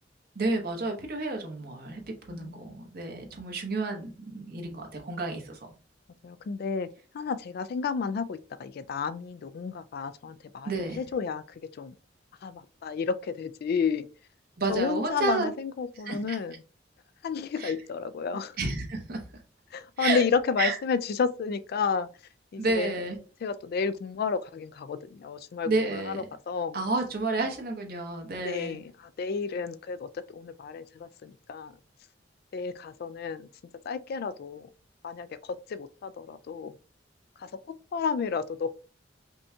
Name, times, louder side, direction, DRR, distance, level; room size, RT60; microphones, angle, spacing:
voice 1, 0.3-2.0 2.3-5.6 10.6-11.0 14.6-15.5 16.0-16.4 17.6-17.7 18.6-19.2 20.0-20.2 20.6-20.7 22.6-23.1 25.7-26.2 26.7-28.8, right 3 dB, 55° right, 1.0 m, -30 dB
voice 2, 2.3-2.8 6.2-6.9 7.1-11.9 12.4-14.1 14.7-16.6 17.2-18.6 19.7-22.1 22.5-22.9 23.4-26.8 27.4-27.5 28.4-31.7 32.5-33.5 33.9-34.7 35.0-36.7 37.4-37.5 37.9-38.7, left 5 dB, 55° left, 0.3 m, -31 dB
5.3 x 2.3 x 2.7 m
head